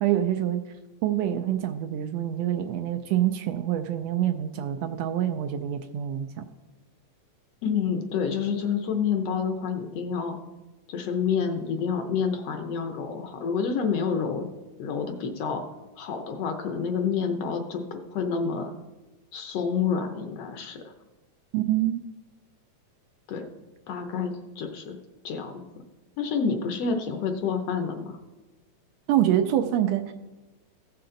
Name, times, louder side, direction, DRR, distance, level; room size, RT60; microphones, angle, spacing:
voice 1, 0.0-0.6 1.0-6.5 21.5-22.0 29.1-30.1, right 11 dB, 80° right, 7 dB, 1.6 m, -26 dB
voice 2, 7.6-10.4 10.9-14.5 14.8-15.6 16.0-18.7 19.3-20.8 23.3-23.5 23.9-25.0 25.2-25.8 26.2-28.2, left 6 dB, 70° left, 5 dB, 1.7 m, -28 dB
15.5 x 6.8 x 3.8 m, 1.1 s
omnidirectional pair, 3.3 m